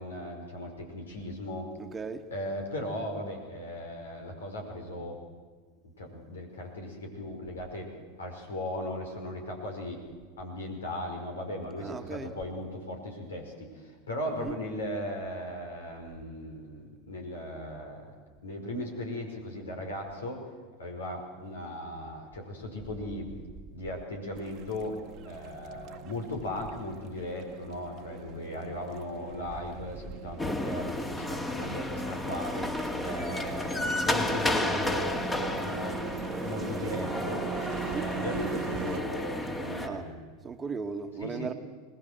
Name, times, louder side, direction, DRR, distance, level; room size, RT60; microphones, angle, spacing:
voice 1, 0.0-1.7 2.3-5.2 5.8-7.9 8.2-10.0 10.4-18.1 18.4-20.4 20.8-23.3 23.7-25.0 25.2-36.1 36.4-37.5 37.9-40.3 41.2-41.5, left 1 dB, 80° left, 5.2 m, -37 dB
voice 2, 1.8-2.2 11.8-12.3 14.3-14.6 37.8-38.1 39.8-40.1 40.4-41.5, right 5 dB, 20° right, 1.6 m, -37 dB
sound 1, 24.3-39.0, right 11 dB, 45° right, 1.3 m, -41 dB
sound 2, 30.4-39.9, left 1 dB, 15° left, 2.3 m, -32 dB
22.5 x 19.5 x 7.9 m
hypercardioid pair, 90°, 0 cm